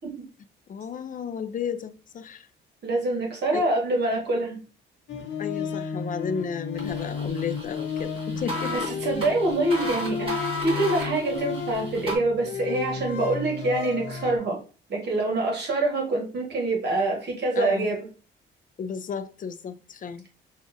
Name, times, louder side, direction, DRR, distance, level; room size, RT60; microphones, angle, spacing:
voice 1, 0.7-2.5 3.5-3.6 5.4-8.9 17.6-17.9 18.8-20.3, left 7 dB, 45° left, 0.5 m, -33 dB
voice 2, 2.8-4.6 8.7-14.6 14.9-18.1, right 2 dB, 60° right, 1.5 m, -25 dB
sound 1, 5.1-14.4, left 5 dB, 70° left, 1.0 m, -33 dB
sound 2, 6.7-12.1, left 1 dB, 25° right, 1.7 m, -35 dB
6.1 x 2.5 x 2.6 m
cardioid pair, 90°, 20 cm